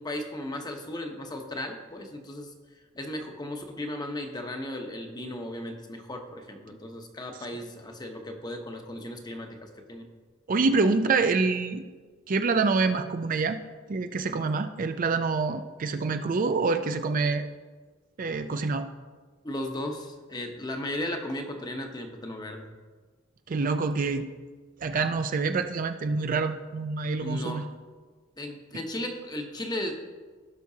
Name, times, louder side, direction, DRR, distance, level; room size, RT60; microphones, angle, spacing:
voice 1, 0.0-2.5 2.9-10.1 19.4-22.7 27.2-27.7 28.4-29.9, left 1 dB, 20° left, 3 dB, 0.9 m, -36 dB
voice 2, 10.5-11.8 12.3-13.6 13.9-17.4 18.2-18.9 23.5-24.3 24.8-27.6, right 4 dB, 45° right, 8 dB, 0.4 m, -26 dB
16.0 x 5.9 x 2.8 m, 1.4 s
head